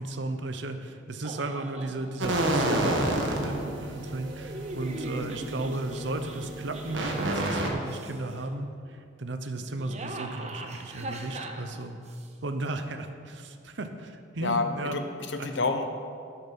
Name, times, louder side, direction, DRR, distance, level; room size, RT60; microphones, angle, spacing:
voice 1, 0.0-12.0 12.4-15.0 15.4-15.5, right 2 dB, 70° right, 7 dB, 0.8 m, -35 dB
sound 1, 1.2-2.0 2.7-3.3 4.2-7.4 7.8-8.4 9.6-12.3, right 1 dB, 35° right, 0.9 m, -41 dB
sound 2, 2.2-7.7, right 1 dB, 85° right, 1.6 m, -30 dB
voice 2, 14.4-15.9, left 3 dB, 65° left, 6 dB, 1.0 m, -29 dB
12.0 x 7.1 x 6.0 m, 2.4 s
head